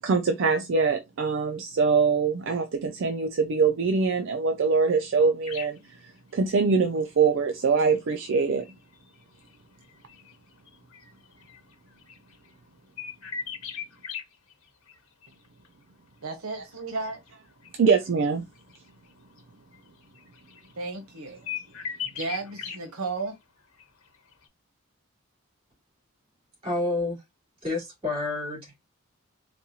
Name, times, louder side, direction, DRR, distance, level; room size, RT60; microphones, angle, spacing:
voice 1, 0.0-8.7 16.6-16.7 17.8-18.5, right 5 dB, 60° right, 0.4 m, -24 dB
sound 1, 5.4-5.8 6.9-7.0 7.8-12.5 13.0-14.2 14.5-15.0 15.2-15.7 16.5-18.3 18.5-19.1 19.4-19.5 19.7-20.8 21.1-22.8 23.2-23.3 23.6-24.1 24.3-24.4, left 7 dB, 90° left, 1.3 m, -39 dB
voice 2, 16.2-17.2 20.8-21.4 22.0-23.4, right 3 dB, 80° right, 0.8 m, -34 dB
voice 3, 26.6-27.2 27.6-28.8, left 2 dB, 25° right, 2.6 m, -29 dB
4.1 x 2.3 x 2.7 m
head